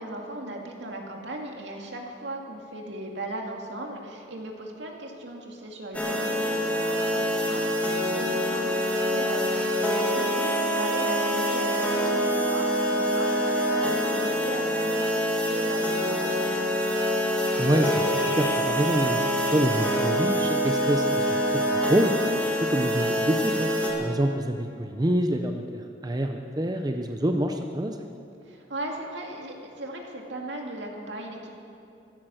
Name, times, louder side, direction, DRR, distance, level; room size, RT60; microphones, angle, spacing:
voice 1, 0.0-16.7 28.4-31.5, right 1 dB, 80° right, 1 dB, 2.3 m, -37 dB
sound 1, 5.9-23.9, equal, 10° left, 2.0 m, -25 dB
sound 2, 8.6-10.9 11.2-11.5 11.8-12.2 12.5-12.6 12.8-19.1 19.4-19.7, left 2 dB, 60° left, 1.2 m, -42 dB
voice 2, 17.6-19.2 19.5-22.1 22.6-23.7 24.0-28.0, right 1 dB, 20° right, 4 dB, 0.7 m, -26 dB
15.5 x 13.5 x 6.4 m, 2.7 s
head